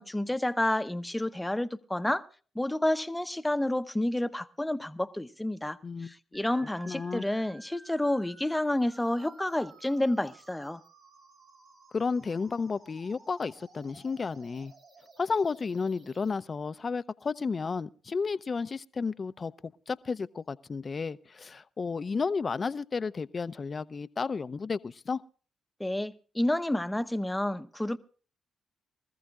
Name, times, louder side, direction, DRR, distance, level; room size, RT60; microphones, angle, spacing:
voice 1, 0.0-2.2 2.5-10.8 25.8-28.0, left 1 dB, 10° left, 0.8 m, -30 dB
sound 1, 6.3-16.3, right 3 dB, 80° right, 6.5 m, -55 dB
voice 2, 6.9-7.2 11.9-14.7 15.2-25.2, left 5 dB, 45° left, 0.6 m, -32 dB
24.5 x 14.5 x 2.4 m
supercardioid pair, 50°, 0 cm